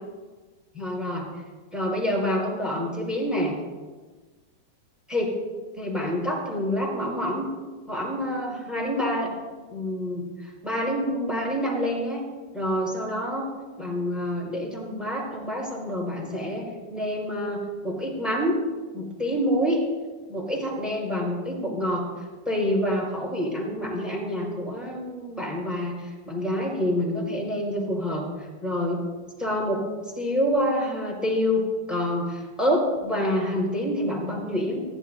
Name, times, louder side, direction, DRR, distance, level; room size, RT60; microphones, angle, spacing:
voice 1, 0.7-1.3 1.7-3.5 5.1-5.4 5.8-7.5 7.9-9.3 9.7-12.2 12.5-13.5 13.8-18.6 18.9-19.8 20.3-22.0 22.4-29.0 29.4-29.9 30.1-31.6 31.9-34.8, equal, ahead, -3 dB, 4.7 m, -27 dB
23.0 x 15.0 x 2.8 m, 1.3 s
omnidirectional pair, 5.0 m